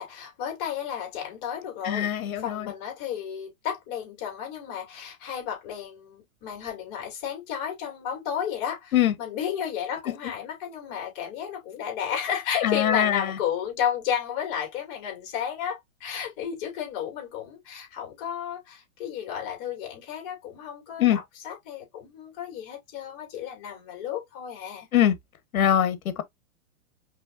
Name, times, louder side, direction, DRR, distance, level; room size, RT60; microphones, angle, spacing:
voice 1, 0.0-24.9, left 9 dB, 35° left, 2.7 m, -33 dB
voice 2, 1.8-2.7 8.9-9.1 12.6-13.3 21.0-21.2 24.9-25.1 25.5-26.2, left 10 dB, 75° left, 1.3 m, -22 dB
5.5 x 3.2 x 2.4 m
hypercardioid pair, 140°, 43 cm